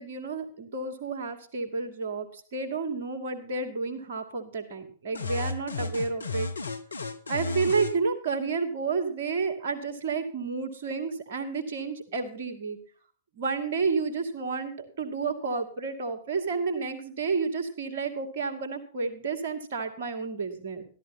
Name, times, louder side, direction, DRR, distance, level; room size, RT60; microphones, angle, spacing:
voice 1, 0.0-6.5 7.3-12.8 13.4-20.8, right 4 dB, 55° right, 6 dB, 2.5 m, -31 dB
sound 1, 5.1-8.0, left 3 dB, 75° left, 1.1 m, -33 dB
13.5 x 13.0 x 4.2 m, 0.41 s
figure-of-eight pair, 105°, 0 cm